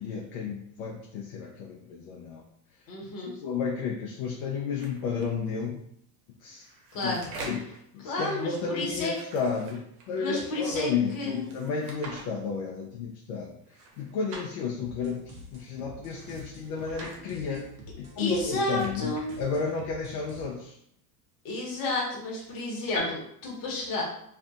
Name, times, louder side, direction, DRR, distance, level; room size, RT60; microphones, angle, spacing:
voice 1, 0.0-2.4 3.2-5.8 6.4-6.7 7.0-7.1 7.4-13.6 14.0-17.7 18.0-20.7, left 5 dB, 60° left, -1 dB, 0.6 m, -32 dB
voice 2, 2.9-3.3 6.9-7.2 8.0-9.1 10.2-11.5 18.2-19.3 21.4-24.0, left 2 dB, 45° left, -2 dB, 1.1 m, -31 dB
sound 1, 4.8-5.3 6.4-7.8 9.0-10.3 11.5-12.2 13.7-14.5 16.0-17.2 18.3-19.4, right 3 dB, 65° right, 0.9 m, -45 dB
sound 2, 14.8-20.4, left 1 dB, 35° right, 0.7 m, -48 dB
2.5 x 2.5 x 2.4 m, 0.71 s
hypercardioid pair, 95°, 49 cm